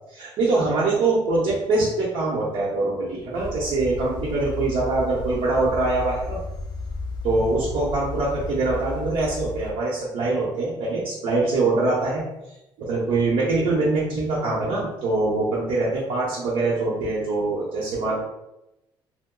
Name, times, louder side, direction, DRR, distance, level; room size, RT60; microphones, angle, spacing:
voice 1, 0.1-6.4 7.2-12.2 12.8-18.2, right 3 dB, 60° right, -6 dB, 0.9 m, -23 dB
sound 1, 3.3-9.7, left 3 dB, 50° left, 0.4 m, -33 dB
2.8 x 2.1 x 3.7 m, 0.92 s
cardioid pair, 145°, 10 cm